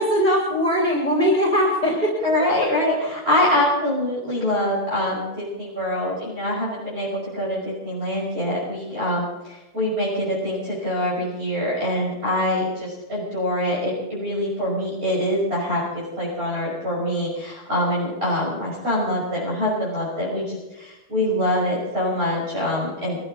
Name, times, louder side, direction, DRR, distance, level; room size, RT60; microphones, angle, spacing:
voice 1, 0.0-2.1, equal, 40° left, -3 dB, 3.5 m, -20 dB
voice 2, 2.2-23.2, left 1 dB, 85° right, -6 dB, 5.8 m, -24 dB
22.5 x 14.0 x 4.1 m, 1.0 s
omnidirectional pair, 1.0 m